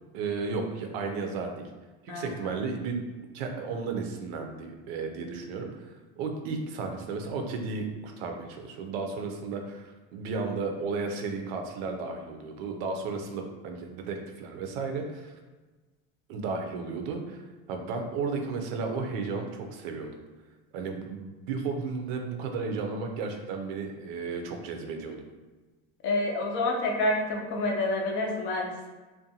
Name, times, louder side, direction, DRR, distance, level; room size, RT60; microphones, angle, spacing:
voice 1, 0.1-1.7 2.0-3.0 3.3-15.4 16.3-20.1 20.7-25.2, right 4 dB, 80° right, 3 dB, 0.5 m, -34 dB
voice 2, 26.0-28.9, left 2 dB, 40° left, 0 dB, 0.4 m, -28 dB
2.5 x 2.2 x 2.7 m, 1.2 s
cardioid pair, 170°, 30 cm